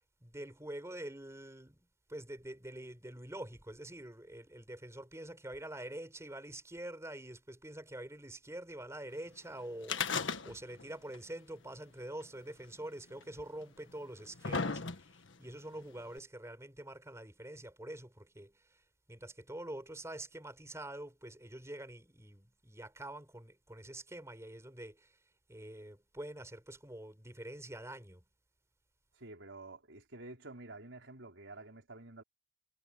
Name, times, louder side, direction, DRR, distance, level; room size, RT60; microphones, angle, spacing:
voice 1, 0.2-15.1 15.4-18.8 19.1-25.2 25.5-28.2, right 1 dB, 15° right, 4.6 m, -46 dB
sound 1, 9.8-10.9 11.1-11.2 12.2-12.3 13.2-13.3 14.0-15.3 16.2-16.3, left 5 dB, 85° left, 1.5 m, -35 dB
voice 2, 29.1-32.2, right 2 dB, 85° right, 4.5 m, -50 dB
head